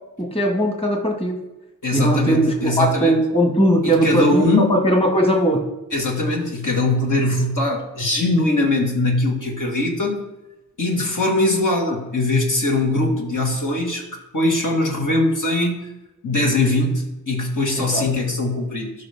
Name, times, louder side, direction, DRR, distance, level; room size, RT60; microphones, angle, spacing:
voice 1, 0.2-1.4 1.9-5.7 17.7-18.1, right 1 dB, 15° left, 2 dB, 1.9 m, -19 dB
voice 2, 1.8-3.2 3.8-4.8 5.9-10.2 10.8-15.9 16.2-18.9, left 2 dB, 50° left, -1 dB, 2.0 m, -21 dB
12.5 x 5.6 x 3.7 m, 1.0 s
cardioid pair, 45°, 38 cm